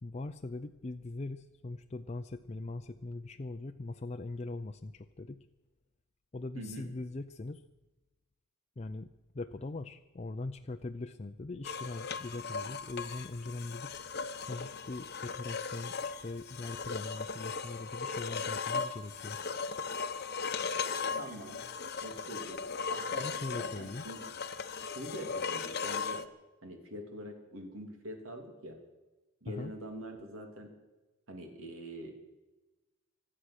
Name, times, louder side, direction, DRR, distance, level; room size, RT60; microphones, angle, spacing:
voice 1, 0.0-5.5 6.3-7.6 8.8-13.9 14.5-19.4 23.1-24.0 29.5-29.7, left 2 dB, 30° left, 6 dB, 0.5 m, -41 dB
voice 2, 6.5-6.9 21.2-21.6 22.0-23.3 23.5-24.2 24.9-26.2 26.6-28.8 29.4-30.7 31.3-32.1, equal, 75° right, 3 dB, 3.2 m, -44 dB
sound 1, 11.6-26.3, left 5 dB, 50° left, 0.9 m, -37 dB
25.0 x 8.8 x 6.5 m, 1.1 s
head